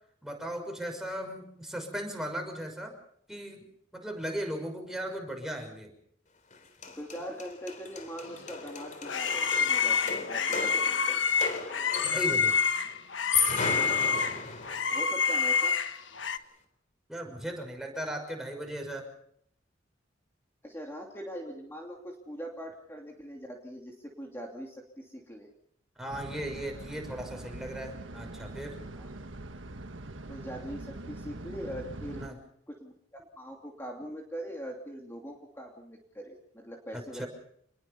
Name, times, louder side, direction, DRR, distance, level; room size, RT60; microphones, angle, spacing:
voice 1, 0.2-2.9 3.3-3.6 3.9-5.9 12.0-12.6 17.1-19.0 26.0-28.8 32.2-32.3 36.9-37.3, equal, ahead, 3 dB, 6.1 m, -37 dB
sound 1, 6.5-6.6 6.8-12.5 13.1-14.9, left 4 dB, 40° left, 3.7 m, -34 dB
voice 2, 7.0-11.3 14.9-15.8 20.6-25.5 29.0-29.1 30.3-32.3 32.7-32.9 33.4-37.2, equal, 15° left, 0 dB, 2.8 m, -42 dB
sound 2, 8.5-16.4, left 6 dB, 70° left, 1.4 m, -28 dB
sound 3, 26.1-32.3, right 2 dB, 85° right, 1.5 m, -43 dB
28.0 x 21.0 x 5.6 m, 0.69 s
head